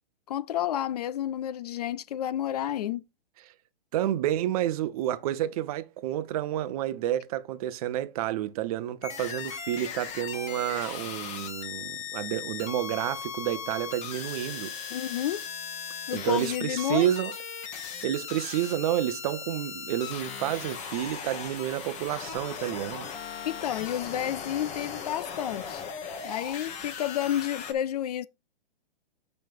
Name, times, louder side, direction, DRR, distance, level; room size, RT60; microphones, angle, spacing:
voice 1, 0.3-3.0 14.9-15.4 16.1-17.1 23.4-25.8 26.2-28.3, left 11 dB, 45° left, 0.4 m, -30 dB
voice 2, 3.9-14.7 16.1-17.3 18.0-23.1, right 12 dB, 40° right, 0.8 m, -30 dB
sound 1, 9.0-27.7, left 7 dB, 25° left, 1.2 m, -38 dB
7.5 x 5.4 x 4.6 m
hypercardioid pair, 135°, 30 cm